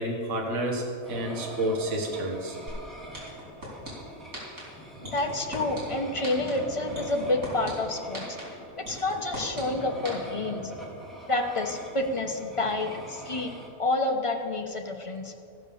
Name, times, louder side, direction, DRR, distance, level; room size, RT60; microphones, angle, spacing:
voice 1, 0.0-2.7, right 1 dB, 60° right, 0 dB, 1.7 m, -30 dB
sound 1, 1.0-13.7, right 1 dB, ahead, 1.7 m, -42 dB
sound 2, 2.7-2.8 3.1-3.9 4.3-4.6 5.0-5.8 6.2-6.5 6.9-7.7 8.1-8.4 8.8-9.6 10.0-10.1, right 1 dB, 90° right, 4.2 m, -37 dB
voice 2, 5.0-8.4 8.8-10.6 11.3-13.5 13.8-15.3, left 2 dB, 25° left, 3 dB, 0.9 m, -29 dB
15.5 x 5.4 x 6.9 m, 2.4 s
omnidirectional pair, 1.4 m